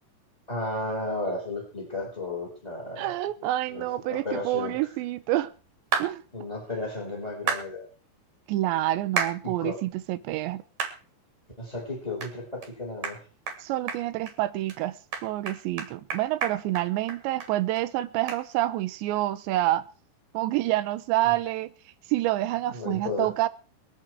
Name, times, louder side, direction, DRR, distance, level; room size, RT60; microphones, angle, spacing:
voice 1, 0.5-3.2 3.7-4.7 6.3-7.9 9.4-9.8 11.6-13.2 21.2-21.4 22.6-23.3, left 2 dB, 10° left, 5.3 m, -33 dB
voice 2, 3.0-5.5 6.0-6.2 8.5-10.6 13.6-15.0 15.2-19.9 20.3-21.7 22.1-23.5, right 15 dB, 90° right, 3.2 m, -27 dB
sound 1, 5.9-6.1 7.5-7.7 9.2-9.4 9.9-10.0 10.8-11.0 11.4-11.5 12.2-12.3 12.6-12.7 13.0-13.2 13.5-13.6 13.9-14.3 14.7-14.8 15.1-17.5 17.8-17.9 18.3-18.4, right 6 dB, 45° right, 3.2 m, -30 dB
24.0 x 8.2 x 4.7 m
omnidirectional pair, 5.0 m